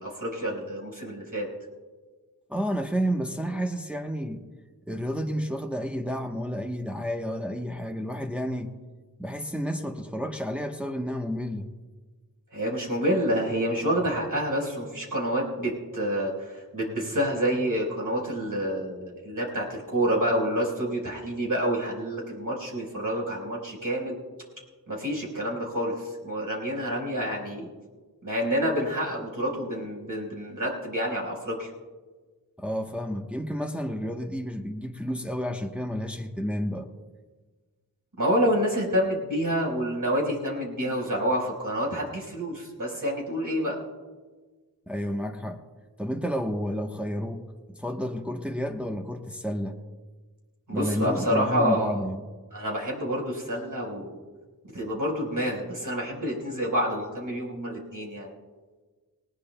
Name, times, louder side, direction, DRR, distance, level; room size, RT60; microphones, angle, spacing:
voice 1, 0.0-1.5 12.5-24.2 24.9-27.7 28.2-31.7 38.2-43.8 50.7-52.0 52.5-54.2 54.7-58.3, equal, 60° right, -2 dB, 4.6 m, -28 dB
voice 2, 2.5-4.4 4.9-8.7 9.2-11.7 32.6-36.9 44.9-45.6 46.0-49.8 50.7-52.2, equal, 5° right, 2 dB, 1.0 m, -31 dB
19.5 x 18.5 x 2.2 m, 1.4 s
wide cardioid pair, 45°, 37 cm